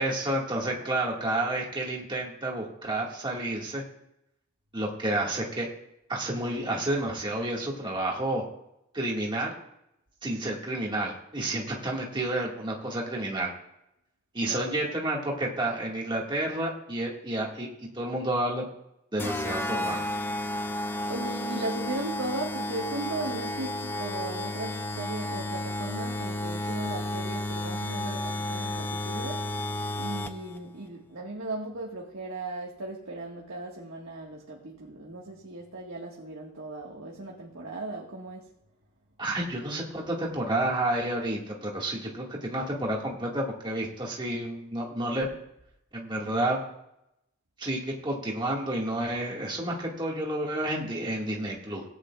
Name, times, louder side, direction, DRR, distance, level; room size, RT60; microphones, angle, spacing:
voice 1, 0.0-3.8 4.7-5.7 6.1-8.4 8.9-9.5 10.2-13.5 14.3-17.7 17.9-18.7 19.1-20.0 39.2-45.3 45.9-46.6 47.6-51.8, right 1 dB, 25° right, -2 dB, 1.9 m, -30 dB
sound 1, 19.2-30.6, left 1 dB, 10° left, 0.5 m, -32 dB
voice 2, 21.1-29.5 30.0-38.5, right 2 dB, 75° right, -2 dB, 1.6 m, -37 dB
17.5 x 9.7 x 2.4 m, 0.80 s
head